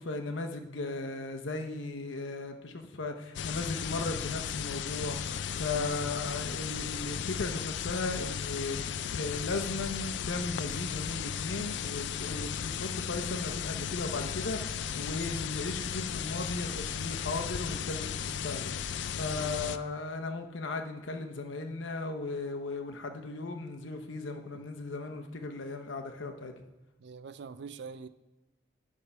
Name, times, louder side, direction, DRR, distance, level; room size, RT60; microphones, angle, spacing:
voice 1, 0.0-26.5, left 3 dB, 90° left, 4 dB, 0.8 m, -36 dB
sound 1, 3.3-19.8, left 8 dB, 75° left, 0.3 m, -35 dB
voice 2, 5.7-6.1 19.4-19.8 24.5-24.6 27.0-28.1, right 5 dB, 65° right, 13 dB, 0.4 m, -45 dB
10.0 x 3.6 x 5.4 m, 1.1 s
head